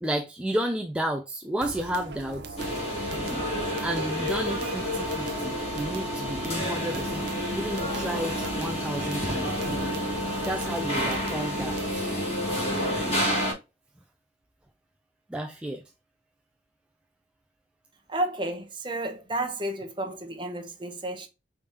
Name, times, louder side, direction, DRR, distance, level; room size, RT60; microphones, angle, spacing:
voice 1, 0.0-2.6 3.8-7.3 7.6-9.7 10.5-12.0 15.3-15.8, right 1 dB, 5° right, 0.3 m, -32 dB
sound 1, 1.6-12.3, right 3 dB, 60° right, 0.6 m, -41 dB
sound 2, 2.6-13.5, equal, 35° left, 2.0 m, -29 dB
voice 2, 18.1-21.3, right 1 dB, 25° right, 0.9 m, -31 dB
4.9 x 3.5 x 2.8 m
head